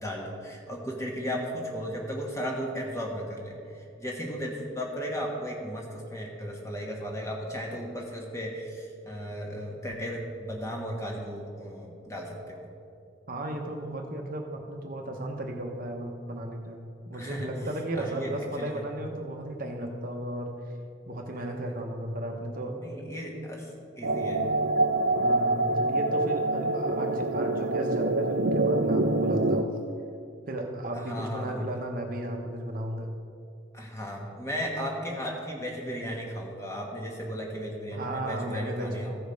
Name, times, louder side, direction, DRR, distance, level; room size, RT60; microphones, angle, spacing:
voice 1, 0.0-12.7 17.1-17.5 18.0-18.3 18.6-18.8 21.3-21.5 22.7-23.7 24.0-24.5 31.0-31.7 33.7-39.2, equal, 15° left, -1 dB, 1.2 m, -35 dB
voice 2, 13.3-16.8 17.1-20.6 21.1-22.8 25.1-29.8 30.5-33.1 37.9-39.1, right 1 dB, 45° right, 2 dB, 0.8 m, -34 dB
sound 1, 24.0-29.6, right 2 dB, 65° right, 0.5 m, -25 dB
14.0 x 5.1 x 5.2 m, 2.5 s
head